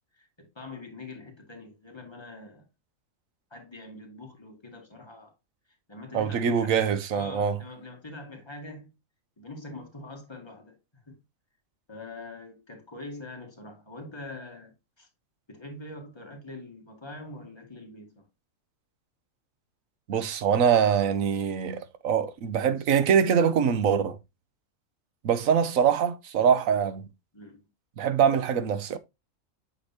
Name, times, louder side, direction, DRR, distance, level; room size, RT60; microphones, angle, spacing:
voice 1, 0.1-2.7 3.5-5.3 5.9-6.8 7.1-8.9 9.4-10.8 11.1-11.2 11.9-15.1 15.5-18.3 27.3-27.7, left 2 dB, 20° left, 2.0 m, -44 dB
voice 2, 6.1-7.6 20.1-24.2 25.2-27.1 28.0-29.0, right 7 dB, 90° right, 1.2 m, -24 dB
8.2 x 5.4 x 2.8 m
omnidirectional pair, 1.4 m